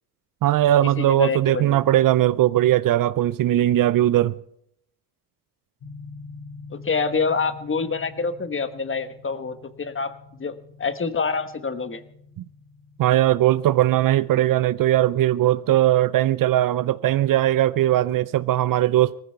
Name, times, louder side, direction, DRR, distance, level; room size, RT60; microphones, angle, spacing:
voice 1, 0.4-4.4 13.0-19.2, right 13 dB, 50° right, 0.5 m, -19 dB
voice 2, 1.0-1.8 6.7-10.1 10.4-12.0, left 4 dB, 30° left, 1.3 m, -26 dB
sound 1, 5.8-15.5, left 4 dB, 50° left, 2.1 m, -46 dB
18.5 x 15.0 x 4.5 m
supercardioid pair, 75°, 42 cm